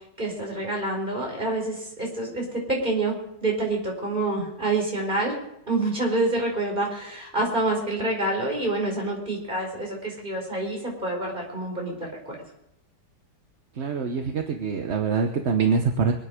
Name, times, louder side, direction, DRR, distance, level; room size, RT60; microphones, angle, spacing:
voice 1, 0.2-5.3 5.7-11.9 12.2-12.3, right 2 dB, 25° right, -1 dB, 5.0 m, -27 dB
voice 2, 13.8-14.2 14.6-16.1, right 5 dB, 45° right, 4 dB, 1.2 m, -24 dB
25.5 x 9.7 x 5.1 m, 0.79 s
omnidirectional pair, 1.9 m